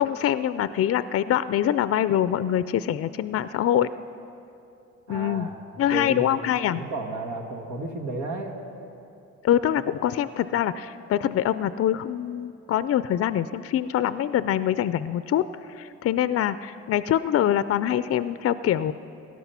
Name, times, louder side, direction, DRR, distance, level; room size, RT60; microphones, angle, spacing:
voice 1, 0.0-3.9 5.1-5.5 5.8-6.8 9.4-15.4 15.8-18.9, left 11 dB, 50° left, 14 dB, 0.4 m, -24 dB
voice 2, 5.1-5.6 5.9-6.2 6.7-8.6, right 2 dB, 90° right, 2 dB, 1.6 m, -32 dB
17.5 x 11.5 x 5.7 m, 2.7 s
cardioid pair, 90°, 30 cm